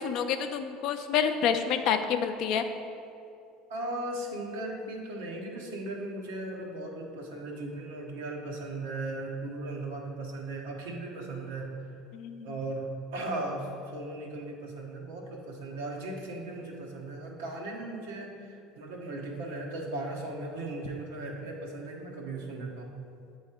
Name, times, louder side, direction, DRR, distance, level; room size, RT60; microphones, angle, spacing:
voice 1, 0.0-2.6 12.1-12.5, left 7 dB, 65° left, 8 dB, 0.4 m, -28 dB
voice 2, 3.7-11.7 12.4-22.9, right 2 dB, 90° right, 0 dB, 0.9 m, -37 dB
8.0 x 3.1 x 4.3 m, 2.6 s
supercardioid pair, 90°, 0 cm